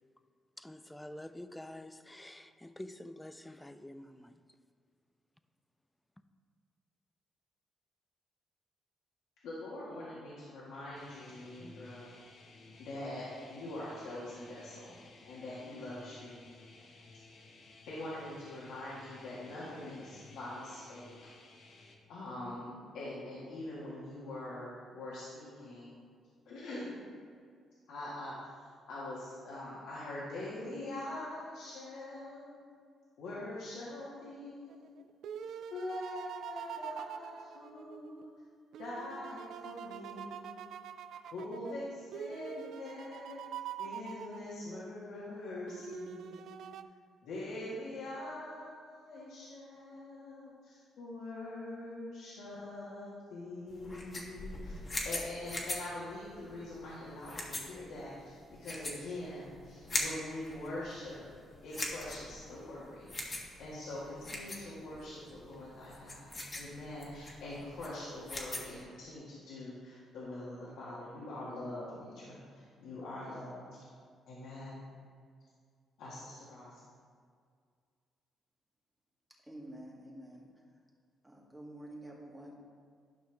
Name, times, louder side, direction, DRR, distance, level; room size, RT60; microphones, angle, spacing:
voice 1, 0.6-4.4, left 1 dB, 10° left, 11 dB, 0.4 m, -48 dB
voice 2, 9.4-12.1 12.8-15.0 15.2-16.4 17.9-21.1 22.1-25.9 26.4-27.0 27.9-32.6 33.2-34.9 35.4-38.3 38.8-40.7 41.3-43.5 43.8-46.7 47.2-54.8 55.0-61.3 61.6-73.7 74.3-74.8 76.0-76.9, left 1 dB, 85° left, -8 dB, 1.7 m, -43 dB
sound 1, 10.9-21.9, left 3 dB, 60° left, 1.2 m, -56 dB
sound 2, 34.7-38.3 38.7-44.9 45.7-46.8, right 9 dB, 75° right, 0.3 m, -45 dB
sound 3, 53.7-68.8, left 2 dB, 30° left, 1.5 m, -42 dB
voice 3, 79.4-80.8 81.2-82.5, right 1 dB, 10° right, -2 dB, 1.8 m, -49 dB
11.5 x 5.7 x 3.4 m, 2.1 s
cardioid pair, 90°, 0 cm